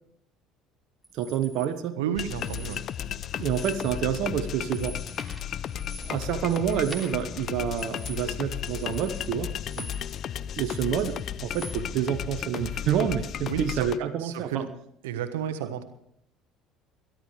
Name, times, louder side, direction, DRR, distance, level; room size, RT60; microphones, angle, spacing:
sound 1, 1.0-1.7 2.3-3.1 3.4-4.1 4.4-10.2 10.5-11.8, right 1 dB, ahead, 3.0 m, -46 dB
voice 1, 1.1-2.0 3.4-5.0 6.0-9.5 10.5-14.6 15.6-15.7, right 9 dB, 65° right, 8 dB, 1.1 m, -28 dB
voice 2, 2.0-2.8 9.8-9.9 13.5-13.9 14.2-14.7 15.0-15.8, right 9 dB, 85° right, 8 dB, 1.3 m, -32 dB
sound 2, 2.1-14.0, left 9 dB, 50° left, 0.6 m, -34 dB
22.5 x 12.0 x 3.3 m, 0.75 s
hypercardioid pair, 70°, 0 cm